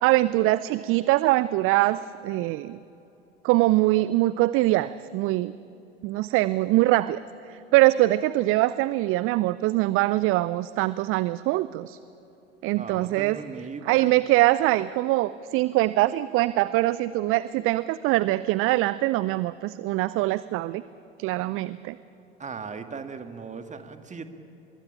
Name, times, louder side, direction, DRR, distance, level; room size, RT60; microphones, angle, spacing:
voice 1, 0.0-2.8 3.4-5.5 6.0-7.2 7.5-12.0 12.6-13.4 13.9-20.8 21.2-22.0, right 17 dB, 45° right, 17 dB, 0.6 m, -23 dB
voice 2, 12.8-14.1 22.4-24.3, right 5 dB, 25° right, 8 dB, 2.1 m, -38 dB
24.5 x 22.0 x 8.9 m, 3.0 s
figure-of-eight pair, 65°, 30 cm